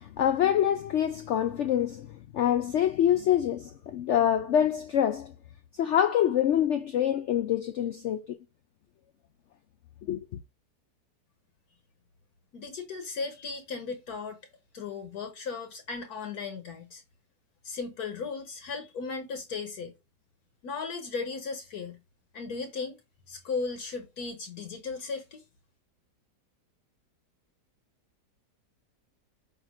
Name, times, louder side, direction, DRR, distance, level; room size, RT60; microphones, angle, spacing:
voice 1, 0.0-5.3 5.7-8.4 10.0-10.2, left 10 dB, 90° left, 0.6 m, -26 dB
voice 2, 12.5-14.4 14.7-17.0 17.6-19.9 20.6-22.0 22.3-23.0 23.3-25.4, left 4 dB, 65° left, 1.5 m, -36 dB
8.1 x 2.7 x 4.9 m
omnidirectional pair, 1.8 m